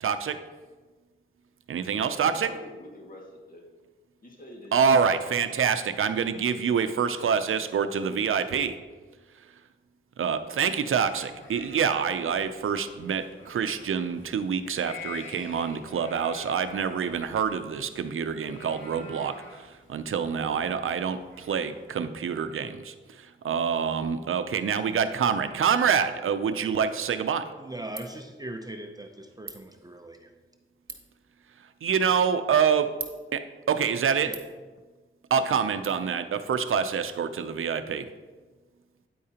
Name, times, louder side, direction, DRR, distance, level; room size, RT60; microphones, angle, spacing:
voice 1, 0.0-0.4 1.7-2.5 4.7-8.8 10.2-27.5 31.8-32.9 33.3-34.3 35.3-38.1, right 6 dB, 75° right, 10 dB, 0.5 m, -26 dB
voice 2, 2.3-3.6 4.2-5.0, left 1 dB, 40° left, -1 dB, 1.9 m, -46 dB
sound 1, 10.9-21.9, left 4 dB, 70° left, 2.0 m, -48 dB
Ratchet pawl, 26.8-35.9, right 5 dB, 50° right, 1.1 m, -48 dB
voice 3, 27.5-30.3 34.2-34.4, right 1 dB, 20° right, 4 dB, 0.6 m, -40 dB
9.4 x 8.6 x 2.9 m, 1.3 s
wide cardioid pair, 95°, 21 cm